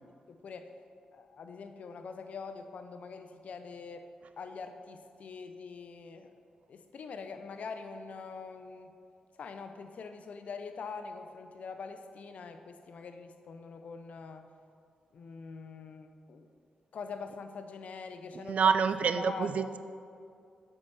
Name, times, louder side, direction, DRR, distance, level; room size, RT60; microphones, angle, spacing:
voice 1, 0.3-0.7 1.1-4.1 4.4-6.3 6.7-9.0 9.4-14.5 15.1-16.5 16.9-18.7 19.2-19.6, left 5 dB, 65° left, 8 dB, 0.6 m, -44 dB
voice 2, 18.4-19.8, right 6 dB, 65° right, 11 dB, 0.4 m, -27 dB
8.3 x 4.7 x 5.4 m, 2.3 s
cardioid pair, 65°, 2 cm